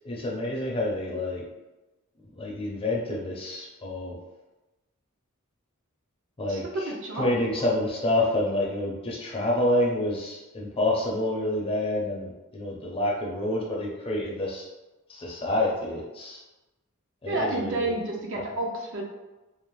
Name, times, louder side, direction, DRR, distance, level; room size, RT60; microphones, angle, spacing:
voice 1, 0.0-1.4 2.3-4.2 6.4-6.9 7.2-14.6 15.1-16.4 17.2-17.9, left 1 dB, 25° left, -3 dB, 0.5 m, -28 dB
voice 2, 6.5-7.3 17.3-19.0, right 1 dB, 60° right, 0 dB, 0.5 m, -30 dB
2.6 x 2.0 x 3.1 m, 1.1 s
head